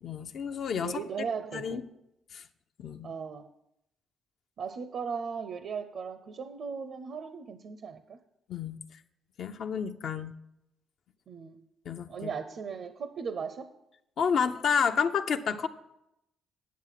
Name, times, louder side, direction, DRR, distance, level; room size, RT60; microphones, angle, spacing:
voice 1, 0.0-0.9 1.5-1.8 2.3-2.4 2.8-3.1 8.5-8.8 9.4-10.3 11.9-12.3 14.2-15.7, left 6 dB, 65° left, 7 dB, 0.6 m, -30 dB
voice 2, 0.8-1.8 3.0-3.5 4.6-8.2 11.3-11.6 12.1-13.7, right 6 dB, 60° right, 11 dB, 0.6 m, -37 dB
9.4 x 7.6 x 5.8 m, 0.84 s
cardioid pair, 90°, 0 cm